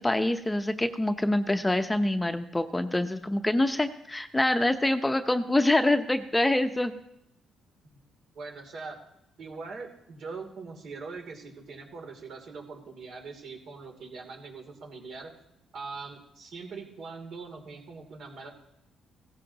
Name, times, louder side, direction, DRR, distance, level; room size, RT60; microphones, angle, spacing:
voice 1, 0.0-6.9, left 1 dB, 10° left, 8 dB, 0.7 m, -25 dB
voice 2, 8.3-9.0 9.4-15.3 15.7-18.5, right 4 dB, 65° right, 2 dB, 2.9 m, -42 dB
16.5 x 14.5 x 2.9 m, 0.80 s
cardioid pair, 90°, 0 cm